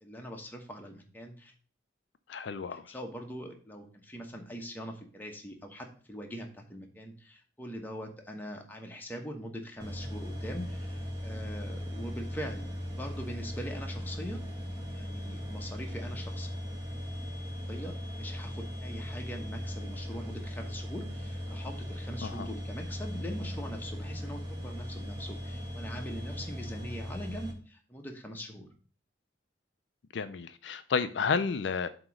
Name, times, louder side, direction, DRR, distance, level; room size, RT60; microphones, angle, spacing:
voice 1, 0.0-1.5 2.7-14.4 14.9-16.5 17.7-28.7, equal, 10° left, 2 dB, 1.1 m, -42 dB
voice 2, 2.3-2.9 22.2-22.5 30.1-31.9, left 5 dB, 70° left, 11 dB, 0.4 m, -31 dB
sound 1, 9.8-27.5, equal, 20° right, 1.6 m, -38 dB
7.6 x 3.0 x 6.1 m, 0.41 s
head